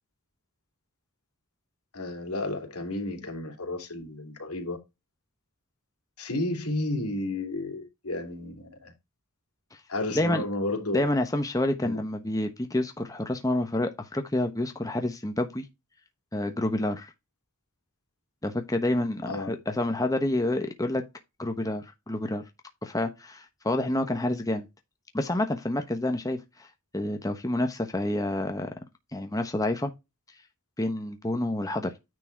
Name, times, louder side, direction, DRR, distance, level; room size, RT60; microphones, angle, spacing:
voice 1, 1.9-4.8 6.2-8.9 9.9-11.1 11.8-12.0 19.3-19.5, left 2 dB, 85° left, 2.9 m, -32 dB
voice 2, 10.9-15.7 16.3-17.1 18.4-21.0 21.4-22.4 22.8-24.7 25.1-26.7 26.9-28.7 29.1-29.9 30.8-31.9, left 1 dB, 15° left, 1.0 m, -28 dB
9.8 x 4.1 x 4.5 m
head